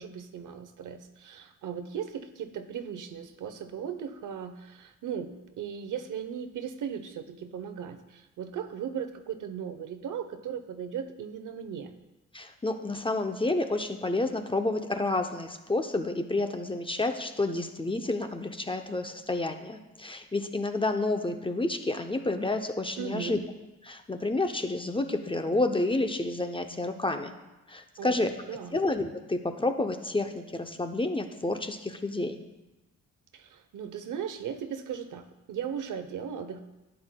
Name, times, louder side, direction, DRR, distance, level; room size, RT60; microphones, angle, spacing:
voice 1, 0.0-11.9 23.0-23.4 28.0-28.8 33.3-36.6, right 8 dB, 70° right, 9 dB, 0.8 m, -37 dB
voice 2, 12.3-23.4 23.8-27.3 27.7-28.4 28.7-32.4, left 2 dB, 15° left, 6 dB, 0.6 m, -30 dB
11.0 x 8.9 x 2.2 m, 1.0 s
cardioid pair, 85°, 32 cm